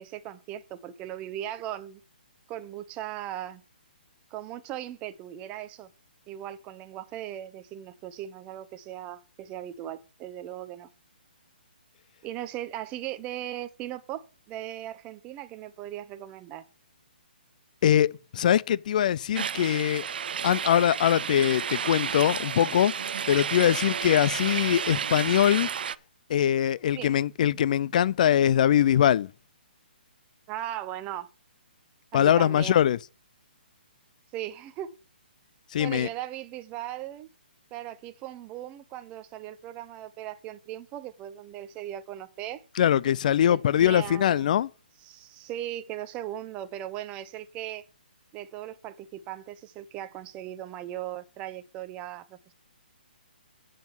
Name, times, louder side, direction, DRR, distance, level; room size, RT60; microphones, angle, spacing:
voice 1, 0.0-2.0 2.5-3.6 4.3-5.9 6.3-10.9 12.2-16.6 26.9-27.1 30.5-31.3 32.1-32.8 34.3-34.9 35.8-37.3 37.7-42.6 43.5-44.5 45.0-47.8 48.3-52.5, right 12 dB, 20° right, 0.8 m, -38 dB
voice 2, 17.8-20.1 20.4-22.9 23.3-25.7 26.3-29.3 32.1-33.0 35.7-36.1 42.8-44.7, left 10 dB, 50° left, 0.5 m, -22 dB
sound 1, 19.3-25.9, right 7 dB, 65° right, 0.4 m, -31 dB
7.8 x 7.3 x 5.5 m
hypercardioid pair, 150°, 6 cm